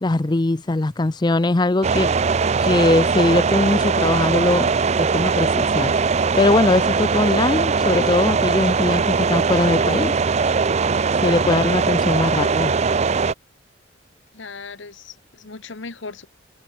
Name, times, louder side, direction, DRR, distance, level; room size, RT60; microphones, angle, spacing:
voice 1, 0.0-2.1 2.6-4.7 5.0-5.9 6.4-10.2 11.2-12.7, left 2 dB, 20° left, 0.5 m, -20 dB
sound 1, 1.8-13.3, right 5 dB, 35° right, 0.5 m, -20 dB
voice 2, 14.3-16.3, left 4 dB, 70° left, 1.2 m, -37 dB
head